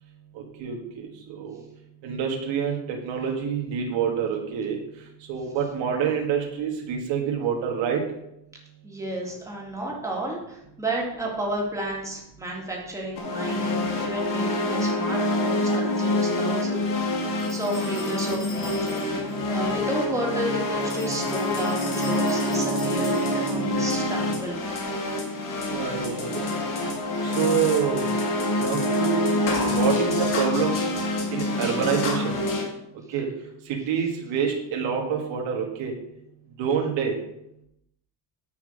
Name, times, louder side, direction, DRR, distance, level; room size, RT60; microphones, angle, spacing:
voice 1, 0.4-1.6 2.0-4.8 5.3-8.0 25.7-26.5 27.2-28.1 28.6-30.8 31.3-32.3 33.1-33.3 33.9-35.9 36.6-37.1, right 7 dB, 90° right, 1 dB, 1.9 m, -27 dB
voice 2, 8.8-24.6, right 1 dB, 5° right, -3 dB, 2.3 m, -32 dB
sound 1, 13.2-32.6, left 1 dB, 45° left, 2.3 m, -26 dB
sound 2, 17.4-19.4 20.8-23.7, left 3 dB, 10° left, 1.5 m, -44 dB
9.4 x 5.9 x 6.4 m, 0.79 s
cardioid pair, 175°, 44 cm